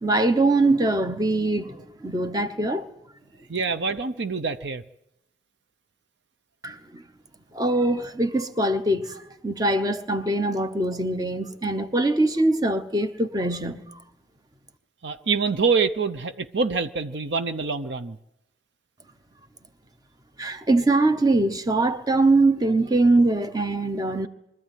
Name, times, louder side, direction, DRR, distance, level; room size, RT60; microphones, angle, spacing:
voice 1, 0.0-2.9 6.6-7.0 7.5-13.9 20.4-24.3, right 2 dB, 20° right, 1.0 m, -22 dB
voice 2, 3.5-4.8 15.0-18.2, right 4 dB, 65° right, 0.7 m, -25 dB
23.5 x 13.5 x 9.2 m
head